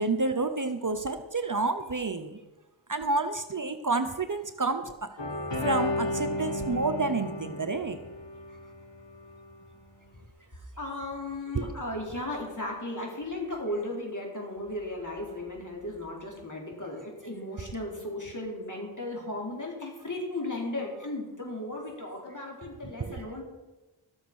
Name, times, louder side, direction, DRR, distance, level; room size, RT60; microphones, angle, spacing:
voice 1, 0.0-2.4 2.9-5.1 5.6-8.0 11.5-11.7 23.1-23.2, right 3 dB, 40° right, 8 dB, 0.9 m, -29 dB
sound 1, 5.2-9.3 10.1-10.2, left 1 dB, 65° left, 2.2 m, -33 dB
voice 2, 10.5-23.4, left 1 dB, 40° left, -1 dB, 4.3 m, -36 dB
13.0 x 7.3 x 6.3 m, 1.1 s
wide cardioid pair, 45°, 46 cm